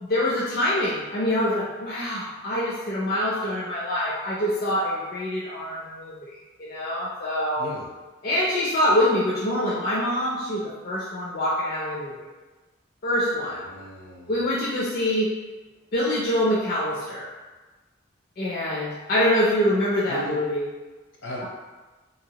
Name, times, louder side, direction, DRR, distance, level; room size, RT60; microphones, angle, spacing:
voice 1, 0.1-6.3 6.6-7.7 8.2-12.1 13.0-13.6 14.3-15.3 15.9-17.3 18.4-20.6, left 1 dB, 55° left, -6 dB, 0.5 m, -25 dB
voice 2, 13.6-14.3 20.1-20.4 21.2-21.5, equal, 80° left, -5 dB, 0.9 m, -36 dB
2.9 x 2.7 x 2.8 m, 1.2 s
head